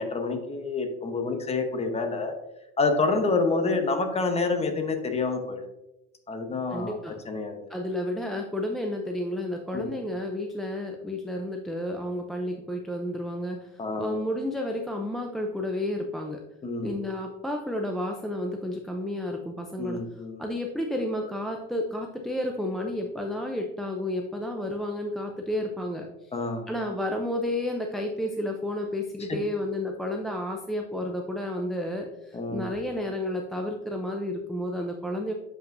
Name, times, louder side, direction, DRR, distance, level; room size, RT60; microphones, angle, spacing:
voice 1, 0.0-2.3 2.8-5.6 6.3-7.0 7.3-7.6 9.7-9.9 13.8-14.2 16.6-17.0 19.8-20.4 24.2-24.3 26.3-26.7 29.3-29.4 32.3-32.7, left 3 dB, 20° left, 6 dB, 0.8 m, -28 dB
voice 2, 6.7-7.2 7.7-13.7 14.0-16.4 16.8-20.0 20.4-26.3 26.7-35.3, left 1 dB, ahead, 1 dB, 0.4 m, -31 dB
7.2 x 5.3 x 2.5 m, 0.91 s
cardioid pair, 120°, 30 cm